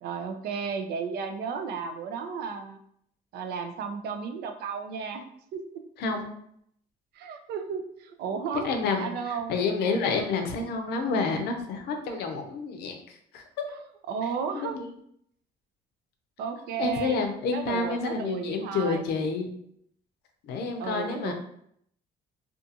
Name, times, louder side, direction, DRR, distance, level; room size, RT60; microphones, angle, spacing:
voice 1, 0.0-2.8 3.3-5.2 5.5-5.8 7.1-8.7 9.0-9.5 12.1-12.2 13.7-13.8 14.1-14.8 16.4-19.1 20.8-21.3, right 6 dB, 70° right, 6 dB, 0.4 m, -34 dB
voice 2, 8.6-13.4 14.5-14.9 16.8-19.5 20.4-21.3, left 4 dB, 80° left, 5 dB, 0.5 m, -29 dB
2.4 x 2.4 x 2.7 m, 0.69 s
cardioid pair, 110°, 17 cm